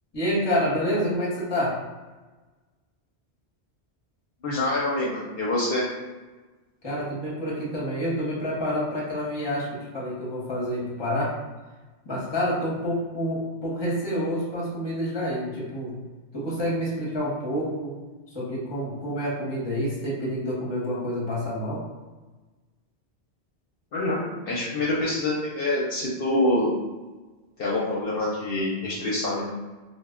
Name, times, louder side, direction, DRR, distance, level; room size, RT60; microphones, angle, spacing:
voice 1, 0.1-1.8 6.8-11.4 12.0-16.0 16.3-18.0 18.3-21.8, equal, 25° left, -5 dB, 0.7 m, -28 dB
voice 2, 4.4-5.8 23.9-26.7 27.6-29.5, left 2 dB, 65° left, -5 dB, 0.7 m, -26 dB
2.1 x 2.1 x 3.5 m, 1.3 s
omnidirectional pair, 1.1 m